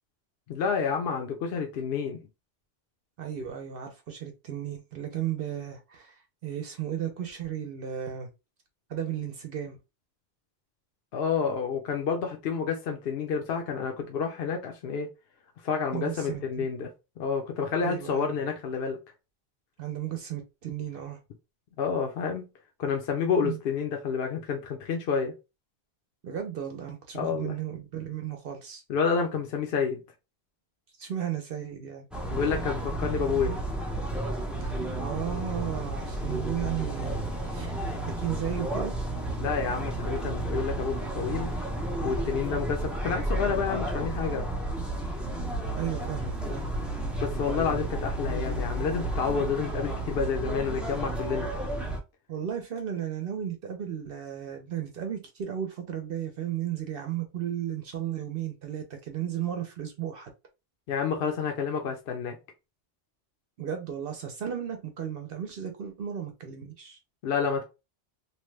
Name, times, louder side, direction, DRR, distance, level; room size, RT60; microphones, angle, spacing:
voice 1, 0.5-2.2 11.1-15.1 15.6-16.9 17.2-19.0 21.8-22.5 22.8-25.3 27.1-27.6 28.9-30.0 32.3-33.6 39.4-41.5 42.0-44.5 47.2-51.5 60.9-62.4 67.2-67.6, left 6 dB, 70° left, 0.8 m, -29 dB
voice 2, 3.2-8.3 8.9-9.8 15.9-16.7 17.8-18.3 19.8-21.2 23.4-23.6 26.2-28.8 31.0-32.1 34.6-34.7 35.0-37.7 38.1-38.9 45.7-46.7 52.3-60.3 63.6-67.0, right 10 dB, 65° right, 0.8 m, -34 dB
sound 1, 32.1-52.0, right 1 dB, ahead, 0.5 m, -32 dB
3.0 x 2.2 x 3.2 m
omnidirectional pair, 1.1 m